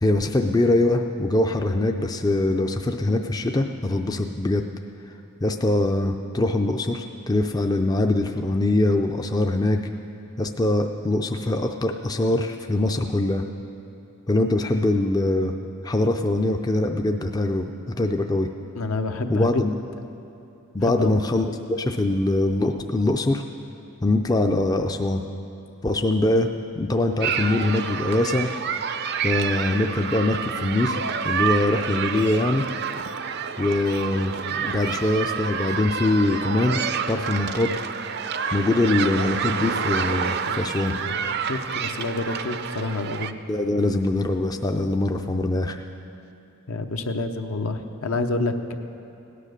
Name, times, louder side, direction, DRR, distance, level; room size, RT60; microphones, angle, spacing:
voice 1, 0.0-4.6 5.4-9.8 10.4-13.5 14.3-15.5 15.8-18.5 19.3-19.8 20.7-23.4 24.0-25.2 25.8-26.5 26.8-28.5 29.2-31.0 31.2-32.6 33.6-37.7 38.5-41.0 43.5-45.8, left 2 dB, 15° left, 4 dB, 0.4 m, -23 dB
voice 2, 18.7-19.6 20.9-21.1 40.3-40.6 40.9-43.3 46.7-48.7, left 2 dB, 70° left, 6 dB, 0.8 m, -28 dB
sound 1, 27.2-43.3, right 6 dB, 50° right, 0.5 m, -28 dB
sound 2, 32.2-32.3 32.6-32.7 33.0-35.0 35.3-35.4 35.7-35.9 36.2-36.3 36.6-36.8 37.1-37.2 37.5-37.6 38.0-38.1 38.3-38.4, right 3 dB, 85° right, 1.3 m, -43 dB
17.5 x 9.9 x 6.6 m, 2.7 s
head